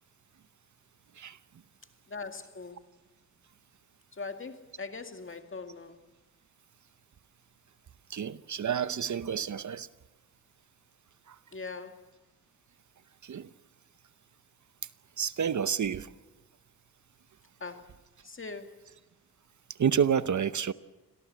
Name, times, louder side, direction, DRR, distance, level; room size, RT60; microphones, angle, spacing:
voice 1, 2.1-2.8 4.2-6.0 11.5-12.0 17.6-17.9 18.2-18.8, left 4 dB, 35° left, 2.1 m, -41 dB
voice 2, 8.1-9.9 11.3-11.4 13.2-13.5 15.2-16.1 19.7-20.7, right 7 dB, 60° right, 0.8 m, -29 dB
26.0 x 17.5 x 7.7 m
cardioid pair, 65°, 34 cm